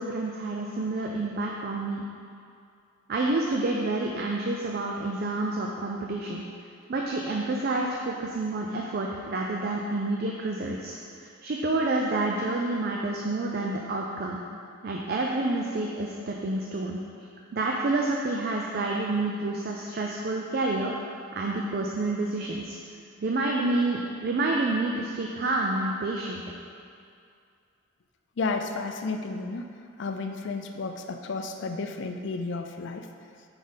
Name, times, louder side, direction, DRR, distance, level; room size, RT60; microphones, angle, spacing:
voice 1, 0.0-2.0 3.1-6.4 6.9-14.4 14.8-17.0 17.5-20.9 21.3-22.8 23.2-26.4, right 2 dB, 50° right, 0 dB, 0.4 m, -28 dB
voice 2, 28.4-29.6 30.0-33.1, left 3 dB, 60° left, 5 dB, 0.4 m, -32 dB
4.9 x 4.0 x 5.5 m, 2.4 s
head